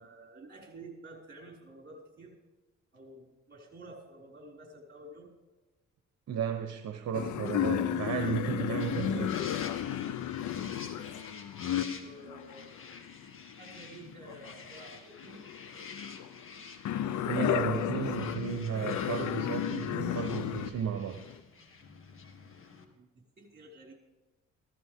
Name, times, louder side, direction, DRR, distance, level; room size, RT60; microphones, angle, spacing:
voice 1, 0.0-2.3 2.9-5.3 11.7-12.7 13.2-15.4 22.9-23.1 23.4-23.9, right 2 dB, 35° right, 5.7 m, -50 dB
voice 2, 6.3-9.4 17.1-21.2, right 8 dB, 60° right, 1.1 m, -34 dB
sound 1, 7.1-14.8 15.2-20.7 21.2-21.3, left 10 dB, 75° left, 0.8 m, -33 dB
sound 2, 8.8-22.8, left 4 dB, 45° left, 2.1 m, -49 dB
16.0 x 13.5 x 3.7 m
cardioid pair, 90°, 30 cm